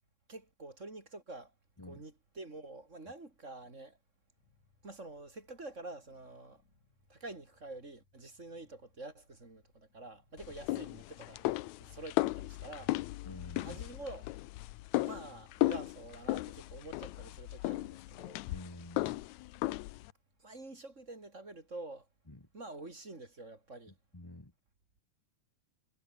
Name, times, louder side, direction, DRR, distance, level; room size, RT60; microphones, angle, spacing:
voice 1, 0.3-1.5 1.8-4.0 4.8-6.6 7.1-11.4 11.8-13.0 13.6-14.4 15.0-18.5 20.4-22.1 22.5-23.9, right 2 dB, 20° right, 3.6 m, -47 dB
sound 1, 4.3-23.4, left 3 dB, 60° left, 8.7 m, -74 dB
sound 2, 10.4-20.1, left 18 dB, 80° left, 1.7 m, -36 dB
voice 2, 13.2-13.8 18.5-19.2 22.3-22.4 24.1-24.5, left 2 dB, 15° left, 1.0 m, -48 dB
omnidirectional pair, 3.8 m